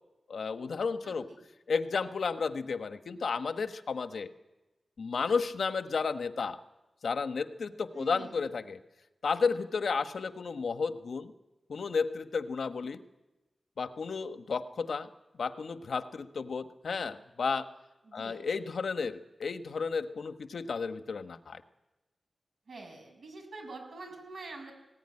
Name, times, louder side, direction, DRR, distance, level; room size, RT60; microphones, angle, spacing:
voice 1, 0.3-1.3 1.7-4.3 5.0-6.6 7.0-8.8 9.2-11.3 11.7-13.0 13.8-15.1 15.4-17.7 18.1-21.6, left 5 dB, 85° left, 9 dB, 1.2 m, -32 dB
voice 2, 1.0-1.4 7.9-8.4 18.1-18.4 22.7-24.7, right 3 dB, 90° right, 3 dB, 6.4 m, -45 dB
19.5 x 18.0 x 9.7 m, 1.0 s
wide cardioid pair, 115°, 0 cm